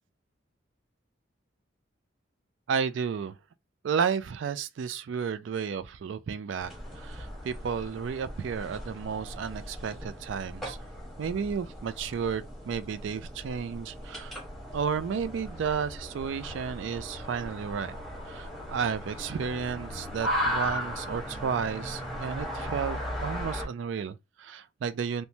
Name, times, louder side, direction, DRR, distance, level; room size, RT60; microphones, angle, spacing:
voice 1, 2.7-3.4 3.8-10.8 11.2-14.4 14.7-18.0 18.3-25.2, right 6 dB, 75° right, 0.3 m, -32 dB
sound 1, 6.6-23.7, equal, ahead, 0.9 m, -37 dB
3.0 x 2.1 x 2.6 m
head